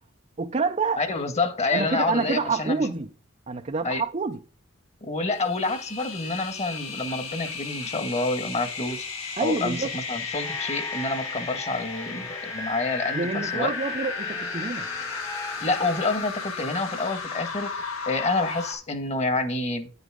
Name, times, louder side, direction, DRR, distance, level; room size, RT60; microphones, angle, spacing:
voice 1, 0.4-1.0 1.7-3.1 3.5-4.4 9.4-9.9 13.1-14.9, right 4 dB, 35° right, 0.6 m, -27 dB
voice 2, 1.0-2.8 3.8-4.0 5.0-9.0 9.4-13.7 15.6-17.7 18.0-19.9, left 3 dB, 35° left, 1.6 m, -28 dB
sound 1, 5.3-18.7, left 5 dB, 75° left, 4.4 m, -34 dB
sound 2, 10.3-16.2, left 1 dB, 15° left, 1.0 m, -39 dB
10.0 x 8.1 x 3.6 m
head